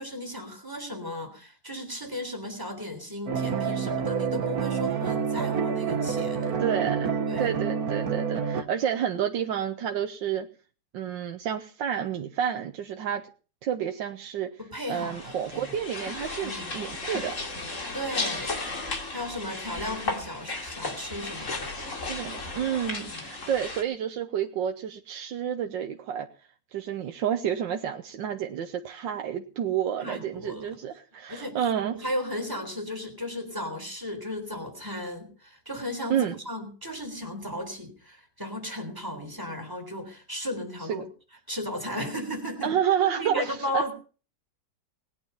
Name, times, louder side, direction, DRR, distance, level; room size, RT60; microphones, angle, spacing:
voice 1, 0.0-6.5 7.3-7.5 14.6-15.7 16.4-16.8 17.9-18.5 19.1-22.2 22.9-23.3 30.0-30.8 31.3-36.2 36.4-41.0 41.5-42.7 43.1-43.9, left 1 dB, 10° right, 4 dB, 3.7 m, -35 dB
sound 1, 3.3-8.6, right 6 dB, 55° right, 1.6 m, -28 dB
voice 2, 6.6-10.5 10.9-13.2 13.6-14.5 14.9-17.3 22.1-26.3 26.7-32.1 36.1-36.4 40.9-41.0 42.6-43.9, right 9 dB, 85° right, 5 dB, 1.6 m, -29 dB
sound 2, 14.9-23.8, left 3 dB, 40° left, 2.8 m, -35 dB
20.0 x 9.5 x 5.7 m, 0.38 s
omnidirectional pair, 2.0 m